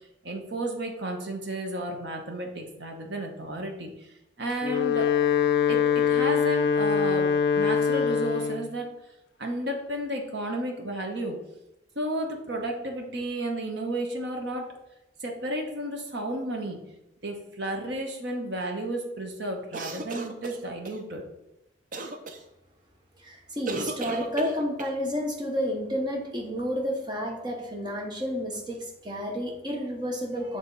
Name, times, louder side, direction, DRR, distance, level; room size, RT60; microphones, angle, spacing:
voice 1, 0.2-3.9 4.4-5.1 5.7-8.9 9.4-11.4 11.9-14.7 15.2-16.8 17.2-21.2, right 1 dB, 65° right, 2 dB, 1.0 m, -32 dB
Wind instrument woodwind instrument, 4.5-8.7, left 7 dB, 65° left, 0.4 m, -23 dB
sound 1, 19.7-21.0 21.9-22.4 23.7-25.0, right 2 dB, 45° right, 0.5 m, -35 dB
voice 2, 23.2-30.6, equal, 25° right, 0 dB, 0.9 m, -31 dB
7.1 x 3.5 x 3.9 m, 0.90 s
head